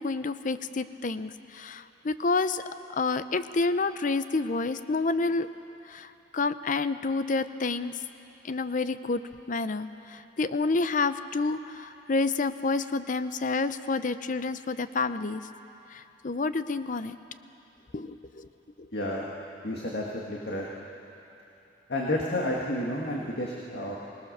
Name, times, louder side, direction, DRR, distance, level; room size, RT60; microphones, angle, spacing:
voice 1, 0.0-2.6 2.9-5.5 5.9-7.9 8.4-9.2 9.5-15.4 15.9-17.2 17.9-18.5, left 3 dB, 45° left, 12 dB, 0.6 m, -29 dB
voice 2, 18.9-19.3 19.6-20.7 21.9-24.0, left 1 dB, 60° left, -3 dB, 1.9 m, -31 dB
25.0 x 19.0 x 6.7 m, 2.9 s
head